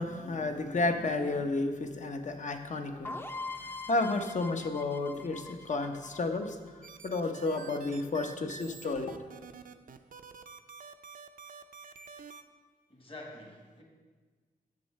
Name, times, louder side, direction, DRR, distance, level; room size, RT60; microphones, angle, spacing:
voice 1, 0.0-3.2 3.9-9.1, left 2 dB, 50° left, 6 dB, 0.7 m, -32 dB
sound 1, 3.0-6.8, left 2 dB, 15° left, 0.5 m, -42 dB
sound 2, 6.8-12.4, right 5 dB, 60° right, 0.5 m, -48 dB
voice 2, 12.9-13.8, left 2 dB, 35° left, 0 dB, 1.4 m, -47 dB
10.5 x 7.2 x 3.2 m, 1.4 s
wide cardioid pair, 80°, 15 cm